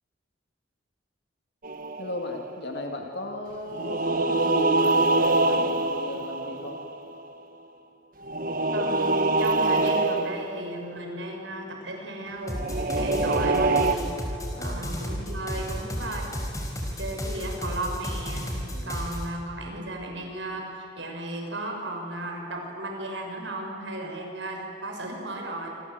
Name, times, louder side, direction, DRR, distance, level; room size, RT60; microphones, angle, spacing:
sound 1, 1.6-2.5 3.7-7.2 8.2-10.7 12.6-13.9, right 2 dB, 50° right, 1.5 m, -24 dB
voice 1, 2.0-6.8 14.5-14.9 18.7-19.0 24.0-24.2, left 1 dB, 60° left, 2 dB, 2.3 m, -36 dB
voice 2, 8.7-12.6 12.9-14.2 14.6-16.3 16.9-18.4 18.8-25.7, right 1 dB, 80° right, 1 dB, 6.1 m, -34 dB
sound 2, 12.5-19.3, equal, 20° left, 4.4 m, -32 dB
27.0 x 26.5 x 7.9 m, 2.7 s
head